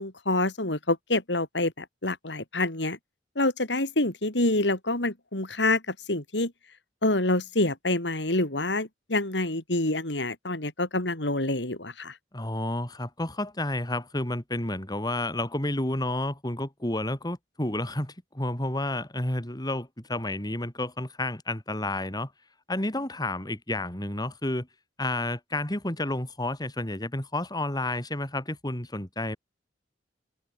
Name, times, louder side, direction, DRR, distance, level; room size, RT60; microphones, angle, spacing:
voice 1, 0.0-3.0 3.4-6.5 7.0-12.2, left 2 dB, 80° left, 4.5 m, -27 dB
voice 2, 12.3-22.3 22.7-24.7 25.0-29.4, left 1 dB, 25° left, 3.6 m, -30 dB
head